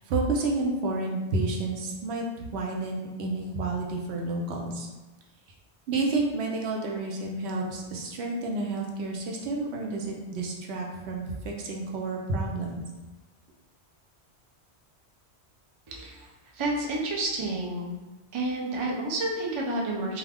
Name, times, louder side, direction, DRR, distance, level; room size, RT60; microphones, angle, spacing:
voice 1, 0.0-2.2 2.5-4.9 5.9-12.8, right 2 dB, 80° right, 0 dB, 0.8 m, -30 dB
voice 2, 15.9-16.3 16.5-18.0 18.3-20.2, right 2 dB, 45° right, -2 dB, 0.4 m, -30 dB
2.4 x 2.3 x 3.3 m, 1.2 s
omnidirectional pair, 1.1 m